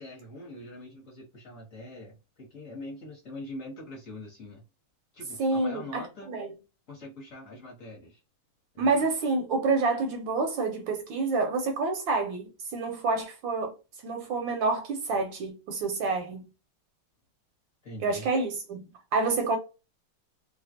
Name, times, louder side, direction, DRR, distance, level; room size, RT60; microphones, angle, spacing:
voice 1, 0.0-4.6 5.1-6.3 6.9-8.2 8.7-9.0 17.8-18.3, left 1 dB, 45° left, 1.3 m, -43 dB
voice 2, 5.4-6.0 6.3-6.5 8.8-13.8 14.0-16.4 18.0-18.9 19.1-19.6, right 3 dB, 75° right, 1.2 m, -28 dB
3.2 x 2.3 x 2.6 m
omnidirectional pair, 2.3 m